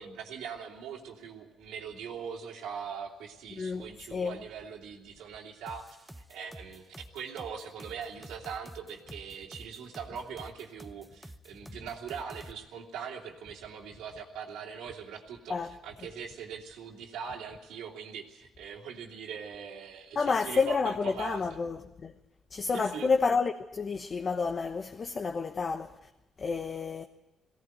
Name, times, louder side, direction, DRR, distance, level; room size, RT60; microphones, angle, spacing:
voice 1, 0.0-21.4 22.7-23.1, right 7 dB, 90° right, 2.7 m, -41 dB
voice 2, 3.5-4.4 15.5-15.7 20.1-22.1 22.5-26.0 26.4-27.0, left 4 dB, 40° left, 1.1 m, -30 dB
sound 1, 5.7-12.5, right 1 dB, 5° right, 0.9 m, -48 dB
18.5 x 17.0 x 9.1 m
cardioid pair, 90°, 0 cm